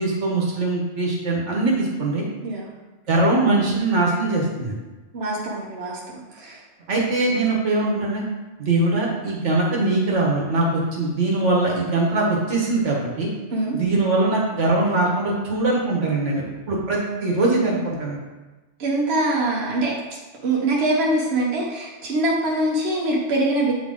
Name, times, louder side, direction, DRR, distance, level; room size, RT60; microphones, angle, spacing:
voice 1, 0.0-2.2 3.1-4.7 6.9-8.2 8.6-13.3 13.7-18.2, right 2 dB, 85° right, -2 dB, 1.7 m, -22 dB
voice 2, 5.1-6.6 13.5-13.8 18.8-19.9 20.4-23.7, right 2 dB, 60° right, -4 dB, 1.2 m, -23 dB
8.4 x 4.1 x 3.7 m, 1.2 s
omnidirectional pair, 1.2 m